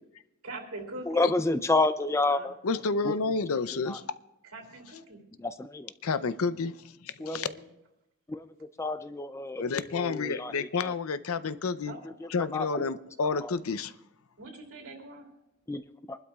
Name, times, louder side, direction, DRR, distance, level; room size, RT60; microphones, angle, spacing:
voice 1, 0.4-1.2 2.3-2.5 4.5-5.2 7.2-7.6 11.9-12.2 14.4-15.3, right 2 dB, 75° right, 1 dB, 2.9 m, -43 dB
voice 2, 1.1-2.5 5.4-5.9 7.2-7.4 8.3-8.4 8.8-9.6 9.9-10.5 12.5-12.7 15.7-15.8 16.1-16.2, left 2 dB, 15° left, 11 dB, 0.3 m, -28 dB
voice 3, 2.6-4.1 6.0-7.5 9.6-11.9 12.3-13.9, left 4 dB, 80° left, 14 dB, 0.6 m, -30 dB
25.0 x 12.0 x 2.4 m, 0.88 s
head